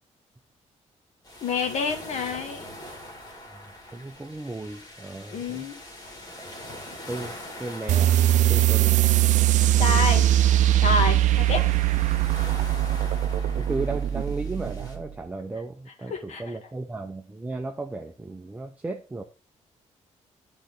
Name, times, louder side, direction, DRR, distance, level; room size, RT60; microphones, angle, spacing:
sound 1, 1.2-15.0, left 1 dB, 35° left, 2.3 m, -43 dB
voice 1, 1.4-2.7 5.3-5.8 9.8-10.3 10.8-11.6 16.1-16.4, left 4 dB, 65° left, 5 dB, 1.5 m, -27 dB
voice 2, 3.5-5.7 6.4-6.5 7.1-8.1 8.5-9.0 9.9-10.2 11.5-11.6 13.6-19.2, right 3 dB, 10° right, 4 dB, 0.5 m, -35 dB
sound 2, 7.9-15.0, right 13 dB, 80° right, 0.4 m, -21 dB
10.0 x 3.9 x 3.7 m, 0.34 s
cardioid pair, 150°, 12 cm